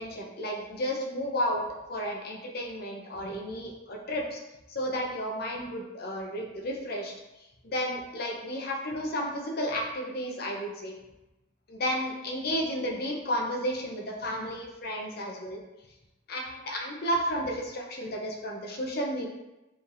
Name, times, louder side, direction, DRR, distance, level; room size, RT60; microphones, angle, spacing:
voice 1, 0.0-1.6 1.9-4.4 4.7-7.1 7.6-10.9 11.7-15.6 16.3-19.3, equal, 50° left, 0 dB, 0.7 m, -32 dB
4.9 x 3.4 x 2.6 m, 0.98 s
head